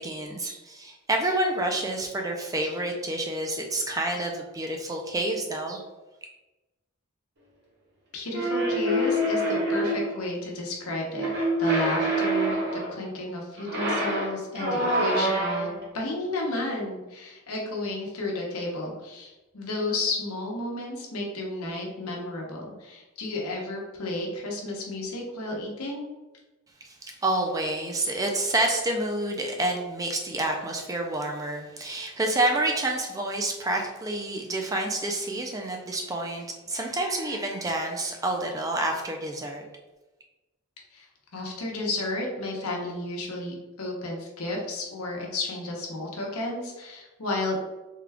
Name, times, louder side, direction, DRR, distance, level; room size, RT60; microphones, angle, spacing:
voice 1, 0.0-5.8 26.8-39.6, right 1 dB, 15° right, 2 dB, 0.3 m, -28 dB
voice 2, 8.1-11.3 11.6-26.1 40.9-41.1 41.3-47.6, left 2 dB, 80° left, -1 dB, 0.9 m, -32 dB
sound 1, 8.3-10.2 11.2-13.0 13.6-15.9, right 1 dB, 50° right, 0.9 m, -26 dB
3.7 x 2.2 x 3.4 m, 1.1 s
head